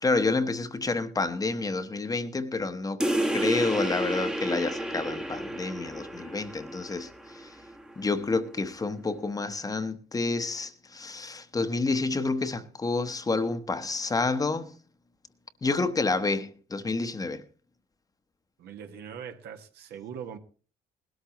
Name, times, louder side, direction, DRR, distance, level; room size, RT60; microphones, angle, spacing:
voice 1, 0.0-3.0 3.3-7.1 7.3-7.5 8.0-14.7 15.6-17.4, left 3 dB, 20° left, 1.0 m, -29 dB
sound 1, 3.0-8.0, right 1 dB, 5° right, 1.0 m, -31 dB
voice 2, 18.6-20.4, right 8 dB, 75° right, 1.6 m, -41 dB
20.0 x 13.0 x 3.0 m
cardioid pair, 110°, 17 cm